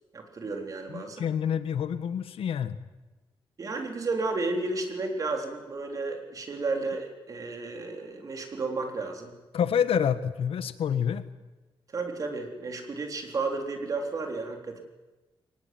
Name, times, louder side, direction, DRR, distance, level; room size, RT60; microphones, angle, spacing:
voice 1, 0.1-1.3 3.6-9.4 11.9-14.8, right 3 dB, 40° right, 4 dB, 3.8 m, -32 dB
voice 2, 0.9-2.8 9.5-11.2, left 8 dB, 85° left, 12 dB, 1.5 m, -27 dB
23.0 x 20.0 x 9.5 m, 1.1 s
wide cardioid pair, 180°, 9 cm